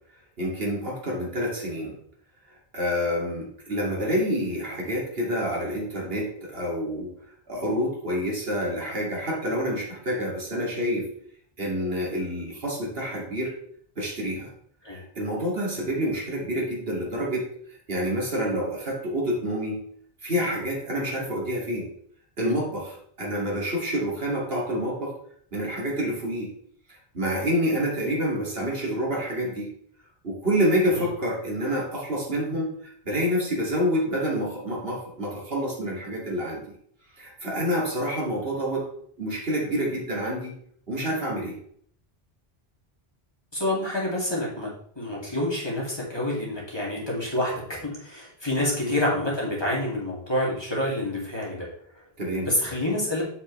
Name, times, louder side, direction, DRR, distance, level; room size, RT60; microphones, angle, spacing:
voice 1, 0.4-2.0 2.7-7.1 7.5-11.1 11.6-13.6 14.0-14.5 14.9-17.5 17.9-19.8 20.2-21.9 22.4-25.1 25.5-26.5 27.1-29.7 30.2-36.7 37.2-38.9 39.2-40.6 40.9-41.6 48.8-49.0 52.2-52.5, equal, 65° right, -3 dB, 2.5 m, -28 dB
voice 2, 43.5-44.7 45.0-51.7 52.4-53.2, left 1 dB, 25° left, -5 dB, 2.4 m, -27 dB
7.3 x 6.5 x 3.2 m, 0.63 s
omnidirectional pair, 1.1 m